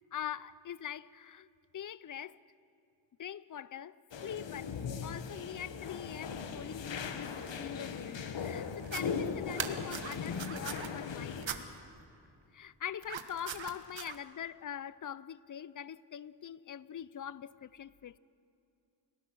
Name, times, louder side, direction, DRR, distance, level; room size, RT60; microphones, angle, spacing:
voice 1, 0.1-1.5 1.7-2.4 3.2-4.0 4.2-11.7 12.5-18.2, left 9 dB, 45° left, 0.6 m, -43 dB
sound 1, 4.1-11.5, left 6 dB, 75° left, 1.4 m, -39 dB
sound 2, 8.8-9.0 9.5-10.9 11.4-11.6 13.0-14.2, right 8 dB, 80° right, 1.5 m, -40 dB
30.0 x 18.0 x 6.3 m
wide cardioid pair, 105°, 45 cm